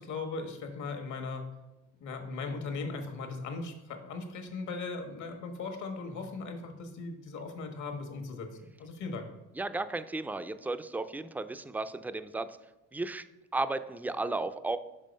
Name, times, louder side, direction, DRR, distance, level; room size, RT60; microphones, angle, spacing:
voice 1, 0.0-1.4 2.0-8.5 8.8-9.3, left 4 dB, 75° left, 5 dB, 1.3 m, -38 dB
voice 2, 9.5-12.6 12.9-13.2 13.5-14.8, right 2 dB, 5° right, 12 dB, 0.3 m, -34 dB
5.5 x 5.0 x 5.2 m, 1.0 s
cardioid pair, 90°, 30 cm